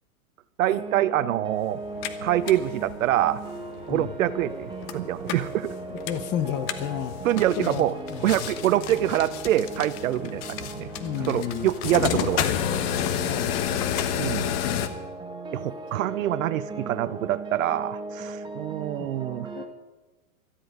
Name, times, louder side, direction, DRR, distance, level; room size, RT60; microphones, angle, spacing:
voice 1, 0.6-1.8 2.2-3.4 3.9-5.7 7.2-8.0 8.2-10.9 11.2-12.5 14.1-14.5 15.5-19.5, right 12 dB, 65° right, 16 dB, 0.8 m, -25 dB
sound 1, 0.7-19.7, right 3 dB, 10° right, 1.2 m, -38 dB
sound 2, 1.8-14.9, left 10 dB, 45° left, 1.2 m, -31 dB
voice 2, 5.9-7.1 7.6-8.3 10.3-10.4 11.0-11.7 13.1-14.0 14.6-15.0 19.0-19.1 19.6-19.7, left 10 dB, 25° left, 11 dB, 0.9 m, -32 dB
17.0 x 13.0 x 5.0 m, 1.2 s
hypercardioid pair, 130°, 43 cm